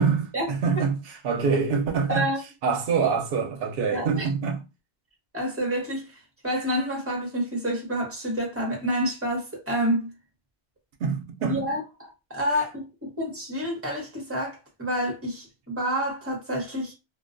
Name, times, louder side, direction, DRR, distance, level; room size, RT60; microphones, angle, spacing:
voice 1, 0.0-2.3 2.6-4.6 11.0-11.7, right 5 dB, 70° right, 0.8 m, -25 dB
voice 2, 2.1-2.4 3.9-4.3 5.3-6.1 6.4-10.1 11.5-16.9, equal, 15° right, 0.8 m, -28 dB
2.3 x 2.2 x 2.5 m
omnidirectional pair, 1.1 m